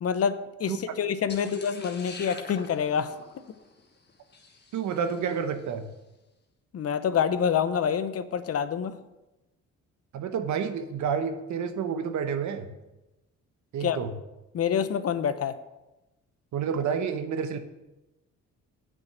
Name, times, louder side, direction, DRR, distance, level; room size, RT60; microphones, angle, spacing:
voice 1, 0.0-3.1 6.7-9.0 13.8-14.0 14.5-15.5, left 7 dB, 50° left, 12 dB, 0.8 m, -27 dB
sound 1, 1.3-5.6, left 4 dB, 35° left, 1.5 m, -46 dB
voice 2, 4.7-5.8 10.1-12.7 13.7-14.1 16.5-17.6, right 7 dB, 70° right, 8 dB, 1.1 m, -29 dB
7.7 x 6.2 x 7.9 m, 1.0 s
cardioid pair, 90°, 30 cm